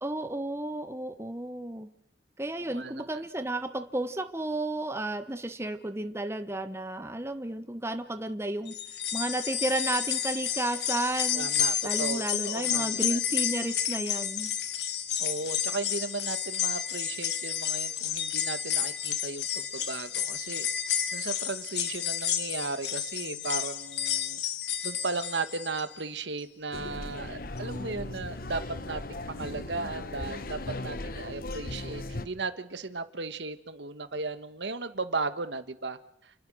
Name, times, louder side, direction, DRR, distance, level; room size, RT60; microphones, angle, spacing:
voice 1, 0.0-1.9 2.4-11.5 11.8-14.5, right 1 dB, 15° right, 9 dB, 1.2 m, -32 dB
voice 2, 2.6-3.2 11.3-13.2 15.2-20.7 21.1-24.4 24.8-36.3, right 3 dB, 90° right, 11 dB, 1.6 m, -36 dB
sound 1, 8.7-26.0 26.4-26.5 27.6-27.7, left 9 dB, 70° left, 1.9 m, -31 dB
sound 2, 26.7-32.3, left 2 dB, 55° left, 1.3 m, -37 dB
29.5 x 20.5 x 6.4 m, 0.72 s
head